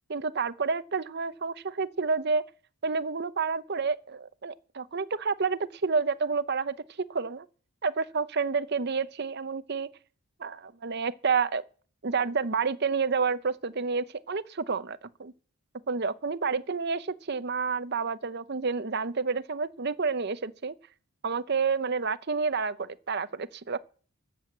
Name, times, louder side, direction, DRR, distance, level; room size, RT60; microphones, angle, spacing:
voice 1, 0.1-2.4 2.8-6.8 7.1-7.5 7.8-9.9 10.4-11.6 12.0-15.3 15.9-20.8 21.2-23.8, right 5 dB, 45° right, 0.7 m, -29 dB
13.5 x 7.7 x 7.8 m
head